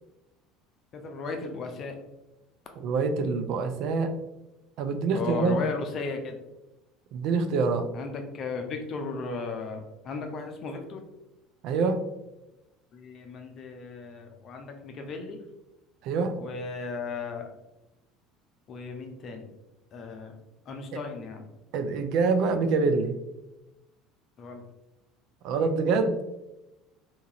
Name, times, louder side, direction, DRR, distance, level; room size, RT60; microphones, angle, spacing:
voice 1, 0.9-2.0 5.1-6.4 7.9-11.0 12.9-15.4 16.4-17.5 18.7-19.5 19.9-20.4 20.7-21.4 24.4-24.6 25.6-25.7, left 4 dB, 45° left, 4 dB, 0.5 m, -35 dB
voice 2, 2.8-4.1 4.8-5.6 7.1-7.9 11.6-12.0 16.0-16.3 21.7-23.2 25.4-26.2, right 4 dB, 60° right, 8 dB, 0.3 m, -25 dB
2.9 x 2.4 x 2.8 m, 0.96 s
hypercardioid pair, 70°, 0 cm